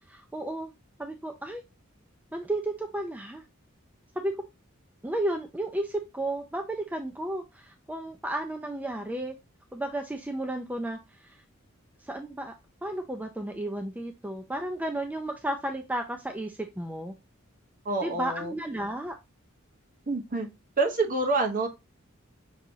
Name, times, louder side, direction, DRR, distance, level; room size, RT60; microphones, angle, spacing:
voice 1, 0.1-0.7 1.0-1.6 2.3-3.5 4.2-4.5 5.0-9.4 9.7-11.4 12.0-12.5 12.8-17.1 18.0-19.2, right 1 dB, 10° right, 0.4 m, -33 dB
voice 2, 17.8-18.5 20.1-20.5 20.8-21.7, right 3 dB, 40° right, 1.0 m, -27 dB
6.1 x 2.8 x 2.7 m
head